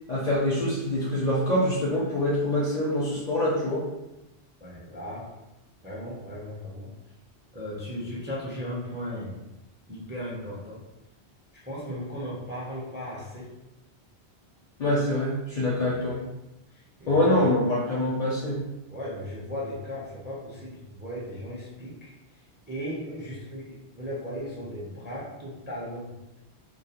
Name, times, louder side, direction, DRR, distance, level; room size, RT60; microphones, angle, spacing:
voice 1, 0.1-3.8 14.8-16.2 17.1-18.6, left 1 dB, 55° left, -5 dB, 0.5 m, -25 dB
voice 2, 4.6-5.3 5.8-6.9 7.5-9.4 9.9-10.8 11.6-13.5 15.7-16.1 16.7-17.5 18.9-22.1 22.7-26.1, equal, 15° right, -7 dB, 0.4 m, -36 dB
2.3 x 2.1 x 2.8 m, 0.99 s
omnidirectional pair, 1.1 m